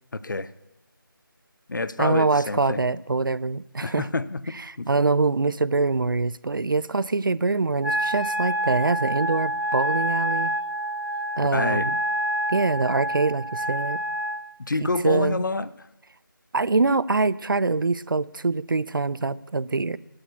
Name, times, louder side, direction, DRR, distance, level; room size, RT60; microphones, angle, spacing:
voice 1, 0.1-0.5 1.7-2.9 3.8-4.9 11.5-11.9 14.6-15.9, left 3 dB, 60° left, 16 dB, 0.6 m, -28 dB
voice 2, 2.0-4.0 4.9-10.5 11.4-12.0 12.5-14.0 15.0-15.4 16.5-20.0, right 3 dB, 65° right, 20 dB, 0.5 m, -24 dB
Wind instrument woodwind instrument, 7.8-14.4, right 1 dB, 85° right, 2.1 m, -27 dB
11.5 x 6.2 x 8.2 m, 0.89 s
figure-of-eight pair, 165°, 12 cm